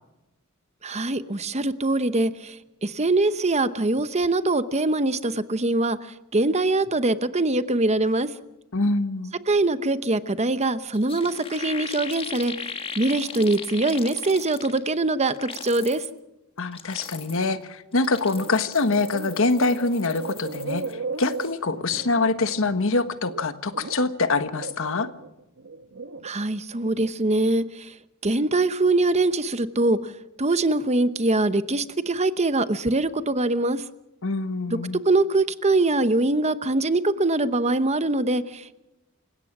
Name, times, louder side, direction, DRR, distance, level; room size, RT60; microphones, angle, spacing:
voice 1, 0.8-8.3 9.5-16.0 26.2-27.9 28.2-30.1 30.4-33.8 34.7-38.8, right 2 dB, 30° right, 13 dB, 0.9 m, -23 dB
voice 2, 8.7-9.3 16.6-20.8 21.2-25.1 34.2-35.0, left 3 dB, 65° left, 11 dB, 1.4 m, -24 dB
sound 1, 10.6-10.7 10.9-15.0 15.3-16.1 16.6-17.5 17.9-20.9 21.2-21.5, left 5 dB, 25° left, 1.6 m, -38 dB
sound 2, 18.2-18.5 18.8-24.1 24.5-26.3 26.7-27.1, right 3 dB, 70° right, 1.2 m, -36 dB
28.5 x 17.0 x 6.0 m, 0.94 s
head